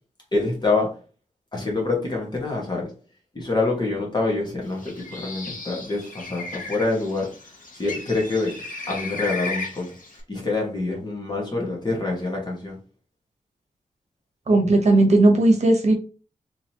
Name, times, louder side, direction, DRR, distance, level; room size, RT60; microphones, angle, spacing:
voice 1, 0.3-0.9 1.5-2.9 3.3-7.3 7.7-8.5 8.9-9.9 10.3-12.8, left 3 dB, 30° left, -1 dB, 1.4 m, -26 dB
Bird, 4.7-10.2, left 3 dB, 80° left, 1.0 m, -35 dB
voice 2, 14.5-15.9, right 2 dB, 55° right, 2 dB, 1.0 m, -16 dB
3.6 x 3.1 x 2.8 m, 0.37 s
wide cardioid pair, 125°, 14 cm